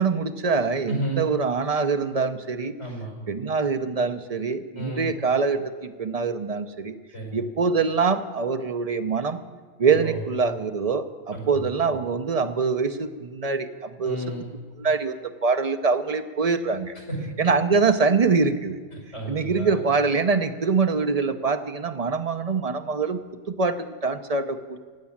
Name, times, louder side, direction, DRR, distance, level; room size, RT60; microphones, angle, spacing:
voice 1, 0.0-2.7 3.3-6.9 7.3-9.4 9.8-14.2 14.8-15.1 15.4-17.0 17.4-18.8 19.3-23.2 23.5-24.8, right 4 dB, 35° right, 9 dB, 0.7 m, -24 dB
voice 2, 0.9-1.3 2.8-3.1 4.8-5.1 7.1-7.4 9.8-10.2 11.3-11.7 14.0-14.5 17.1-17.2 18.9-19.8, right 1 dB, 75° left, 0 dB, 5.2 m, -32 dB
16.0 x 9.5 x 7.3 m, 1.5 s
omnidirectional pair, 1.2 m